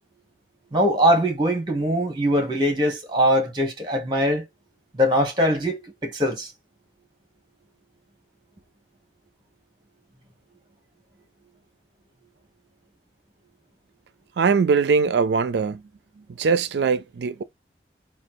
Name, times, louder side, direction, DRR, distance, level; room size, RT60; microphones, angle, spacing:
voice 1, 0.7-4.4 4.9-6.5, equal, 25° right, 1.1 m, -22 dB
voice 2, 14.4-15.8 16.3-17.4, right 5 dB, 70° right, 0.4 m, -21 dB
3.1 x 2.3 x 4.0 m
head